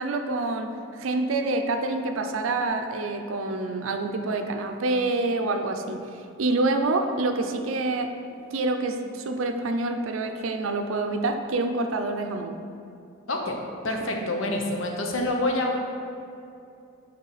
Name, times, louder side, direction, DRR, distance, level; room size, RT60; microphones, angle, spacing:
voice 1, 0.0-8.1 8.5-12.6, right 2 dB, 75° right, 6 dB, 0.5 m, -27 dB
voice 2, 13.3-13.6 13.8-15.8, left 1 dB, 70° left, 2 dB, 0.8 m, -27 dB
9.5 x 3.3 x 4.0 m, 2.6 s
head